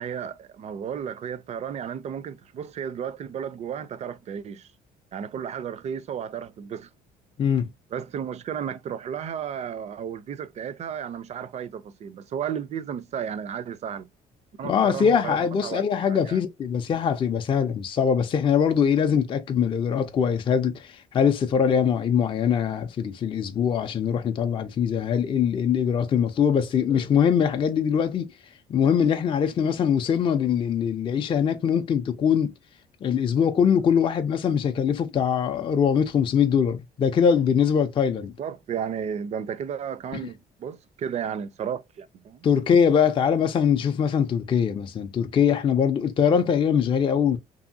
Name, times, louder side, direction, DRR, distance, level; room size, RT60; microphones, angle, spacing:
voice 1, 0.0-4.7 5.1-6.9 7.9-14.1 14.6-16.4 38.4-42.5, right 8 dB, 40° right, 0.4 m, -33 dB
voice 2, 14.6-28.3 28.7-32.5 33.0-38.3 42.4-47.4, left 7 dB, 30° left, 0.4 m, -22 dB
2.7 x 2.7 x 2.5 m
cardioid pair, 110°, 17 cm